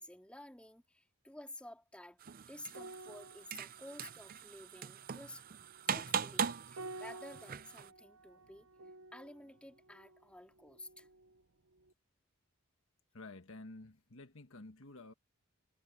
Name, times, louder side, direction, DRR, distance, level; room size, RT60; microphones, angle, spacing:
voice 1, 0.0-2.2 2.5-5.4 5.9-8.7 9.1-11.1, left 1 dB, 5° left, 3.4 m, -52 dB
sound 1, 2.2-7.9, right 7 dB, 40° right, 0.5 m, -40 dB
sound 2, 2.7-11.4 11.7-11.9, right 2 dB, 70° right, 0.7 m, -53 dB
voice 2, 13.1-15.1, left 2 dB, 65° left, 1.4 m, -51 dB
head